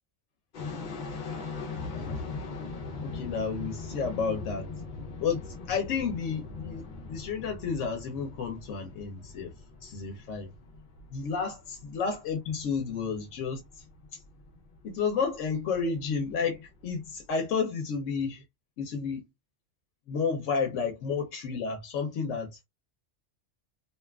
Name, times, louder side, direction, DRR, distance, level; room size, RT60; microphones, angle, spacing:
sound 1, 0.5-17.3, left 3 dB, 50° left, 0.6 m, -42 dB
voice 1, 1.8-2.4 3.0-4.7 5.2-9.5 9.8-10.5 11.1-13.8 14.1-14.2 14.8-18.4 18.8-19.2 20.1-22.6, left 5 dB, 90° left, 0.9 m, -31 dB
2.8 x 2.2 x 2.2 m
omnidirectional pair, 1.2 m